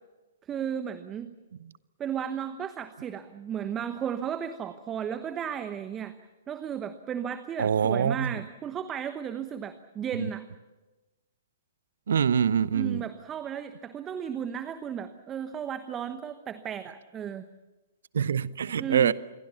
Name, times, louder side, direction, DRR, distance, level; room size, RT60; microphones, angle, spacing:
voice 1, 0.5-1.4 2.0-6.2 6.5-10.4 12.7-17.4 18.8-19.1, right 8 dB, 20° right, 1.1 m, -34 dB
voice 2, 7.6-8.4 10.2-10.3 12.1-13.1 18.1-19.1, right 7 dB, 65° right, 0.8 m, -25 dB
28.0 x 22.5 x 7.1 m
figure-of-eight pair, 115°, 0 cm